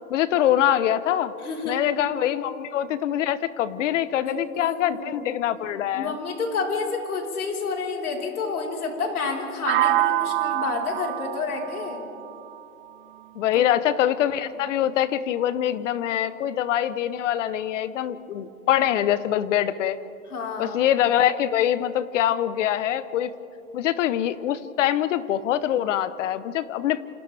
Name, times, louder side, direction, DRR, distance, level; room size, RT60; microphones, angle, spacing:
voice 1, 0.1-1.3 1.6-6.1 13.3-20.0 20.6-23.3 23.7-27.0, left 11 dB, 55° left, 15 dB, 1.1 m, -24 dB
voice 2, 1.4-1.8 4.2-5.3 5.9-12.0 13.4-13.7 20.3-20.8, left 4 dB, 85° left, -1 dB, 4.6 m, -29 dB
sound 1, 9.7-13.5, right 15 dB, 45° right, 0.4 m, -27 dB
29.0 x 27.0 x 3.5 m, 2.7 s
hypercardioid pair, 140°, 43 cm